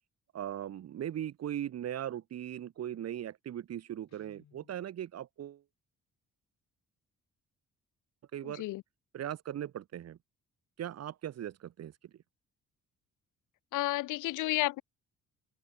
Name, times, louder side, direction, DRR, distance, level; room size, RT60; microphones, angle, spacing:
voice 1, 0.3-5.6 8.3-8.6 9.1-10.2 10.8-12.1, right 11 dB, 55° right, 1.2 m, -39 dB
Guitar, 4.1-4.9, left 10 dB, 60° left, 4.4 m, -63 dB
voice 2, 8.4-8.8 13.7-14.8, left 18 dB, 85° left, 0.8 m, -31 dB
open air
cardioid pair, 90°, 30 cm